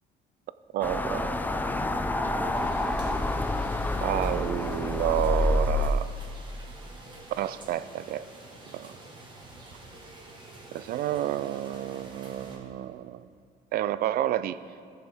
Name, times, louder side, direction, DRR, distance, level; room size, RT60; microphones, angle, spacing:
voice 1, 0.7-1.3 4.0-6.1 7.4-8.3 8.7-8.9 10.7-13.3 13.7-14.6, right 12 dB, 60° right, 15 dB, 0.4 m, -30 dB
sound 1, 0.8-5.9, left 2 dB, 10° left, 0.4 m, -28 dB
sound 2, 2.5-12.6, right 2 dB, 25° right, 1.7 m, -48 dB
15.0 x 6.9 x 3.6 m, 2.3 s
cardioid pair, 110°, 17 cm